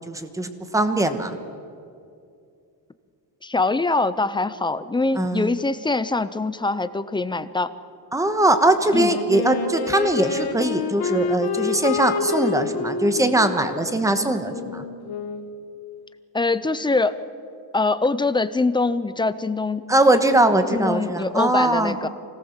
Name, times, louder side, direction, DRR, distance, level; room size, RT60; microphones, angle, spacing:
voice 1, 0.1-1.4 5.1-5.5 8.1-14.8 19.9-21.9, right 1 dB, 5° right, 8 dB, 1.2 m, -21 dB
voice 2, 3.4-7.7 8.9-9.1 16.3-17.2 17.7-19.8 20.7-22.1, left 3 dB, 10° left, 13 dB, 0.4 m, -23 dB
Wind instrument woodwind instrument, 8.8-15.6, left 5 dB, 60° left, 1.8 m, -28 dB
24.5 x 18.0 x 7.3 m, 2.5 s
cardioid pair, 160°, 43 cm